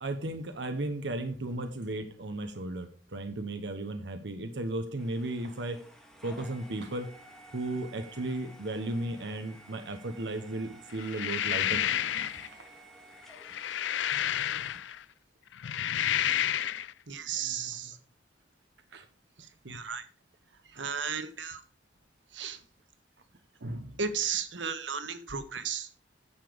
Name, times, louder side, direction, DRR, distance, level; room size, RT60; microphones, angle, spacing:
voice 1, 0.0-5.8 6.2-7.1 7.5-11.8 12.1-12.6 13.6-13.7 16.3-16.6 17.3-17.9 18.9-19.0 20.6-20.8 23.6-24.0, right 2 dB, 70° right, 7 dB, 0.9 m, -35 dB
sound 1, 5.0-14.8, right 2 dB, 5° left, 1.7 m, -53 dB
sound 2, 11.0-12.5 13.3-15.0 15.5-16.9, left 10 dB, 80° left, 0.4 m, -30 dB
voice 2, 17.1-17.9 19.6-20.0 20.8-21.6 22.3-22.6 24.0-25.9, right 6 dB, 90° right, 10 dB, 1.3 m, -34 dB
9.8 x 7.0 x 5.0 m, 0.43 s
head